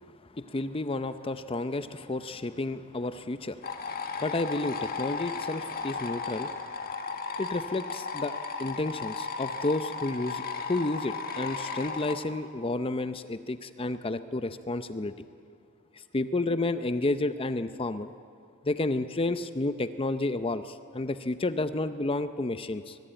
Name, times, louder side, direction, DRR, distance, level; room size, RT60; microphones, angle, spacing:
voice 1, 0.3-3.8 4.2-6.5 7.4-10.4 10.7-15.3 16.1-18.1 18.6-23.0, left 2 dB, 25° left, 11 dB, 0.6 m, -31 dB
sound 1, 3.6-12.1, left 4 dB, 45° left, 1.6 m, -35 dB
23.0 x 20.5 x 9.0 m, 2.5 s
head